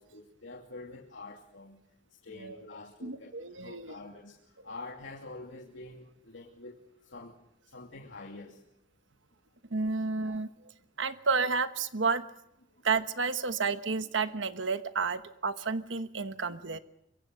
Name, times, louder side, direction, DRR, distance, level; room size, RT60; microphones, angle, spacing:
voice 1, 0.0-1.8 2.2-4.4 4.6-6.8 7.0-7.3 7.7-8.6, left 2 dB, 75° left, -2 dB, 2.8 m, -46 dB
voice 2, 3.0-3.9 9.7-10.5 11.0-12.2 12.8-16.8, right 4 dB, 75° right, 11 dB, 1.2 m, -31 dB
25.0 x 23.5 x 6.9 m, 0.81 s
head